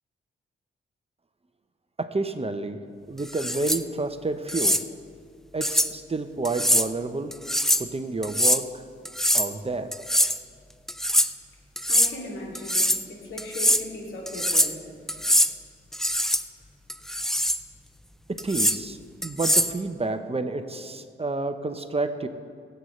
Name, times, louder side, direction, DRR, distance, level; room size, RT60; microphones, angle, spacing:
voice 1, 2.0-4.8 5.5-7.3 7.8-8.9 9.3-9.9 18.3-22.3, right 3 dB, 30° right, 9 dB, 0.8 m, -30 dB
sound 1, 3.3-3.8 4.5-4.8 5.6-5.9 6.4-6.9 7.3-7.9 8.2-8.6 9.0-9.5 9.9-10.4 10.9-11.3 11.8-12.1 12.5-13.0 13.4-13.8 14.3-14.8 15.1-15.5 15.9-16.4 16.9-17.6 18.4-18.8 19.2-19.7, equal, ahead, 0.5 m, -23 dB
voice 2, 11.9-14.8 15.1-15.2, left 1 dB, 75° left, -2 dB, 2.6 m, -37 dB
20.0 x 8.0 x 3.2 m, 2.3 s
cardioid pair, 55°, 21 cm